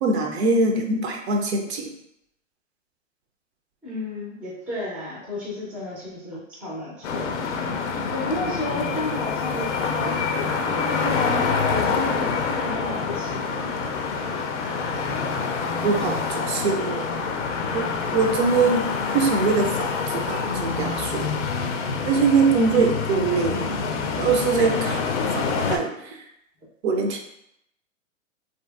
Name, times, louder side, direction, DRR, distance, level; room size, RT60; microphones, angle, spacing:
voice 1, 0.0-1.9 15.8-17.0 17.7-21.3 22.0-23.7 24.2-25.1 25.3-26.2 26.8-27.2, right 4 dB, 55° right, 3 dB, 0.5 m, -23 dB
voice 2, 3.8-7.5 8.1-13.8, left 1 dB, 5° right, -6 dB, 0.4 m, -32 dB
Traffic Avenue and Davenport, 7.0-25.8, left 5 dB, 65° left, 0.5 m, -26 dB
2.7 x 2.6 x 2.3 m, 0.77 s
hypercardioid pair, 135°, 39 cm